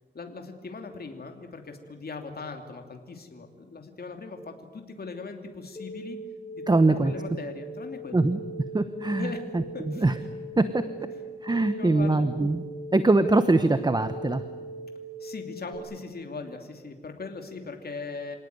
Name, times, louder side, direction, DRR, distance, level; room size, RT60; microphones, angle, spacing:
voice 1, 0.1-6.2 6.6-8.1 9.2-9.4 9.7-10.0 11.6-12.3 15.2-18.4, left 4 dB, 55° left, 4 dB, 2.8 m, -39 dB
sound 1, 5.8-15.8, right 2 dB, 25° left, 5.5 m, -40 dB
voice 2, 6.7-7.1 8.1-8.4 8.7-10.1 10.6-10.8 11.4-12.6 12.9-14.4, right 2 dB, 20° right, 11 dB, 1.0 m, -23 dB
27.0 x 18.5 x 9.6 m, 1.5 s
wide cardioid pair, 105°, 19 cm